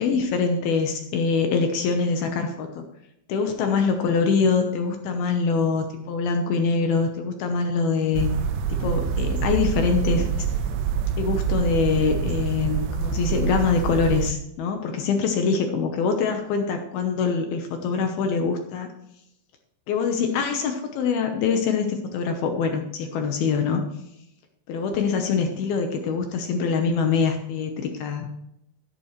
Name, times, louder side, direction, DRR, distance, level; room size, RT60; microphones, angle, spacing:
voice 1, 0.0-2.8 3.3-8.3 8.7-10.5 11.2-18.9 19.9-23.8 24.7-28.3, left 5 dB, 75° left, 5 dB, 2.4 m, -24 dB
sound 1, 8.1-14.3, right 6 dB, 75° right, 2.7 m, -26 dB
11.5 x 11.5 x 3.1 m, 0.81 s
omnidirectional pair, 5.5 m